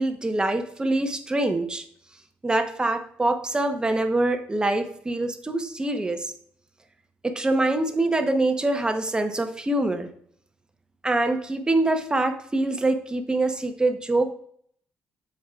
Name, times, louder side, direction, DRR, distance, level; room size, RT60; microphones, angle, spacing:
voice 1, 0.0-1.8 2.4-6.3 7.2-10.1 11.0-14.3, right 2 dB, 20° right, 7 dB, 0.9 m, -24 dB
13.5 x 4.8 x 2.4 m, 0.64 s
supercardioid pair, 70°, 4 cm